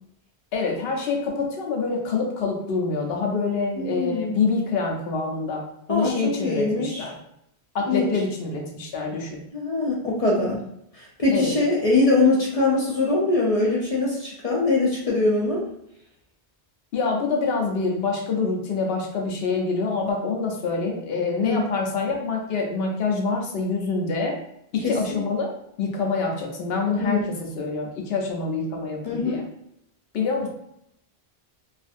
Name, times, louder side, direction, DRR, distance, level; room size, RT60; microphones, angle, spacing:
voice 1, 0.5-7.1 7.7-9.4 11.3-11.5 16.9-24.4 24.7-25.5 25.8-29.4 30.1-30.5, left 4 dB, 70° left, 1 dB, 0.8 m, -26 dB
voice 2, 3.8-4.4 5.9-7.1 7.9-8.1 9.5-10.6 10.9-15.6 21.4-21.6 24.8-25.0 27.0-27.3 29.0-29.4, left 3 dB, 45° left, -4 dB, 0.5 m, -22 dB
2.5 x 2.4 x 2.5 m, 0.76 s
omnidirectional pair, 1.1 m